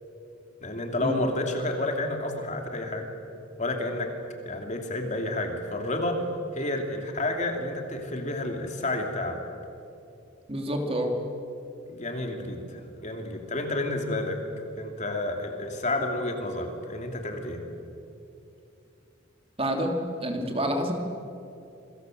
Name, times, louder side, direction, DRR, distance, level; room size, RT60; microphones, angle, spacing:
voice 1, 0.6-3.1 3.6-4.1 4.4-9.4 11.9-14.4 14.8-17.6, left 2 dB, 35° left, 3 dB, 3.1 m, -30 dB
voice 2, 10.5-11.1 19.6-19.9 20.2-20.9, right 1 dB, 30° right, 3 dB, 3.0 m, -28 dB
27.5 x 23.0 x 7.9 m, 2.7 s
head